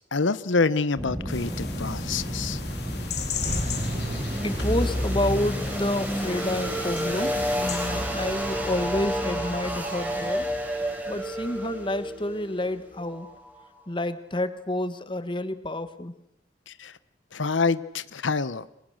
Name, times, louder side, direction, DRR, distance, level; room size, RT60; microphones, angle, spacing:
voice 1, 0.1-2.6 16.7-17.0 17.3-18.7, left 4 dB, 85° left, 16 dB, 0.9 m, -26 dB
sound 1, 1.0-13.8, equal, 10° right, 4.0 m, -30 dB
sound 2, 1.3-7.9, left 6 dB, 60° left, 3.9 m, -37 dB
voice 2, 2.9-3.2 4.4-10.6 11.1-13.3 13.9-16.1, left 1 dB, 25° left, 12 dB, 1.4 m, -29 dB
sound 3, 2.9-7.8, right 1 dB, 35° right, 1.5 m, -37 dB
29.5 x 25.0 x 6.5 m, 0.80 s
head